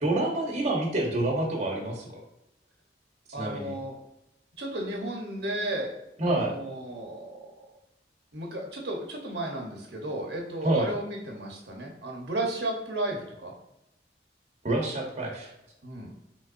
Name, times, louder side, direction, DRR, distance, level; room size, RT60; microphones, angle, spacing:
voice 1, 0.0-2.2 3.4-3.7 6.2-6.5 10.6-10.9 14.6-15.5, right 2 dB, 40° right, -1 dB, 1.0 m, -27 dB
voice 2, 3.3-4.0 4.6-5.9 6.3-7.5 8.3-13.5 15.8-16.1, right 1 dB, 65° right, 0 dB, 1.0 m, -33 dB
5.4 x 3.5 x 2.6 m, 0.87 s
head